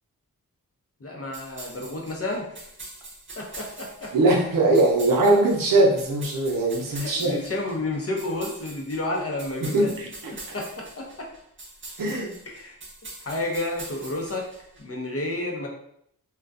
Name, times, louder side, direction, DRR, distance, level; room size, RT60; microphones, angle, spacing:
voice 1, 1.0-2.7 3.4-4.1 6.9-9.9 10.5-11.3 12.5-12.7 13.2-14.5 14.8-15.7, left 2 dB, 40° left, 0 dB, 0.6 m, -31 dB
sound 1, 1.3-14.8, right 2 dB, 35° right, 0.7 m, -43 dB
voice 2, 4.1-7.3 9.6-10.6 12.0-12.3, right 2 dB, 65° right, 0 dB, 0.6 m, -21 dB
2.3 x 2.2 x 2.5 m, 0.71 s
cardioid pair, 50°, 36 cm